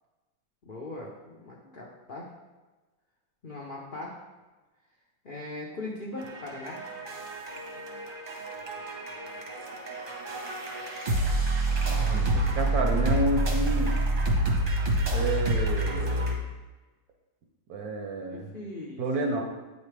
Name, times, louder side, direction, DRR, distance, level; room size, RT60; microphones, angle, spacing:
voice 1, 0.6-2.3 3.4-4.1 5.2-6.8 15.9-16.5 18.3-19.3, left 2 dB, 65° left, -4 dB, 0.5 m, -40 dB
sound 1, 6.2-16.4, right 1 dB, 40° right, 0.8 m, -28 dB
voice 2, 11.8-13.9 15.1-16.3 17.7-18.5 19.0-19.4, right 2 dB, 65° right, 2 dB, 1.0 m, -30 dB
8.5 x 4.1 x 3.3 m, 1.2 s
omnidirectional pair, 2.1 m